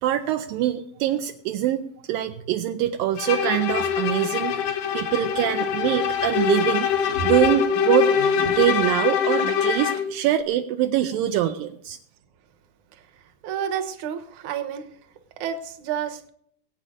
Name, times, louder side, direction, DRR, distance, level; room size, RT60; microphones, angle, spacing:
voice 1, 0.0-8.1 8.5-12.0, right 12 dB, 80° right, 6 dB, 2.1 m, -24 dB
Bowed string instrument, 3.2-10.1, left 7 dB, 90° left, 3.4 m, -23 dB
voice 2, 13.4-14.9 15.4-16.3, right 8 dB, 60° right, 8 dB, 2.1 m, -30 dB
21.5 x 8.7 x 5.1 m, 0.66 s
omnidirectional pair, 4.7 m